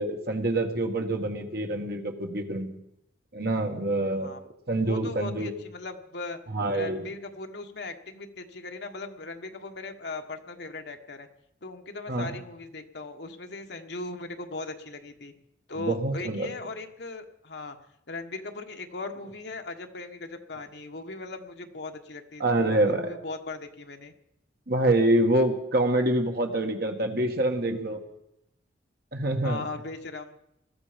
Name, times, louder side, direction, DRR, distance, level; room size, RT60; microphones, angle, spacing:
voice 1, 0.0-2.7 3.3-4.3 4.7-5.5 6.5-7.1 12.1-12.4 15.8-16.5 22.4-23.1 24.7-28.0 29.1-29.7, right 1 dB, 55° right, 4 dB, 1.8 m, -26 dB
voice 2, 4.1-4.5 4.8-6.4 6.7-11.3 11.6-15.3 15.7-17.8 18.1-24.1 29.4-30.4, left 3 dB, 65° left, 5 dB, 1.4 m, -38 dB
20.0 x 13.0 x 5.2 m, 0.84 s
head